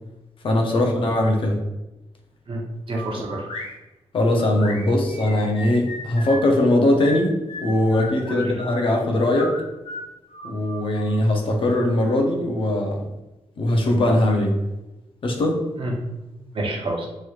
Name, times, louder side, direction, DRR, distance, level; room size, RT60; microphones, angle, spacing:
voice 1, 0.4-1.6 3.2-3.3 4.1-7.3 7.6-9.6 10.4-13.1 13.6-14.5 15.2-15.6, left 1 dB, 55° left, 2 dB, 0.6 m, -20 dB
sound 1, 2.9-3.7 4.4-6.5 7.0-8.8 9.3-11.2, left 1 dB, 75° left, 1.0 m, -35 dB
voice 2, 2.9-3.6 8.2-8.6 15.8-15.9 16.5-17.1, right 1 dB, 55° right, -1 dB, 0.7 m, -29 dB
3.0 x 3.0 x 2.3 m, 1.0 s
wide cardioid pair, 145°, 11 cm